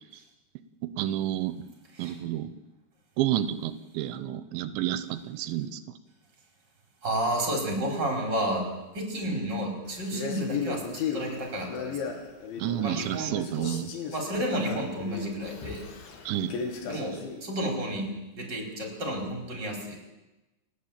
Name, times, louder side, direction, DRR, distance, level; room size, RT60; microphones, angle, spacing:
voice 1, 0.8-1.6 2.0-2.5 3.2-5.8 12.6-13.9 16.3-16.5, right 12 dB, 90° right, 13 dB, 3.2 m, -30 dB
voice 2, 7.0-8.7 8.9-10.8 11.1-12.1 12.8-13.7 14.1-15.9 16.8-20.0, right 1 dB, 25° right, 1 dB, 4.9 m, -31 dB
Male speech man speaking, 10.1-13.1 13.3-17.5, left 6 dB, 85° left, 4.7 m, -35 dB
30.0 x 10.5 x 8.8 m, 1.0 s
omnidirectional pair, 5.2 m